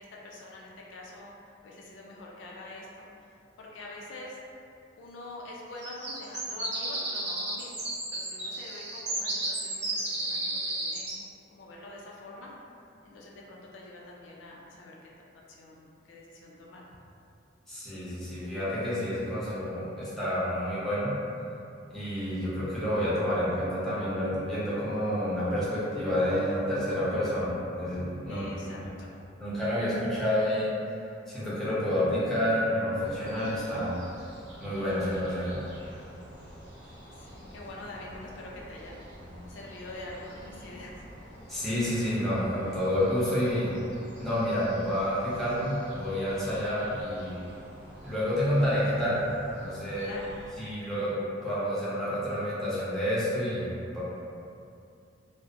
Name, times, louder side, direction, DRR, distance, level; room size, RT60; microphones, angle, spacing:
voice 1, 0.0-1.3 1.6-4.4 5.0-12.5 13.0-15.1 15.5-16.9 28.3-29.2 37.1-39.0 39.5-41.0 50.0-50.3, left 2 dB, 70° left, -3 dB, 0.4 m, -45 dB
sound 1, 5.8-11.2, right 2 dB, 60° right, 0.5 m, -33 dB
voice 2, 17.7-21.1 21.9-28.5 29.4-30.7 31.3-34.0 34.6-35.6 39.2-39.4 41.5-43.7 44.2-47.3 48.0-49.3 49.6-50.1 50.6-51.1 51.4-54.0, equal, ahead, -11 dB, 0.6 m, -29 dB
sound 2, 33.0-50.5, equal, 80° right, 0.9 m, -48 dB
2.4 x 2.0 x 2.5 m, 2.5 s
head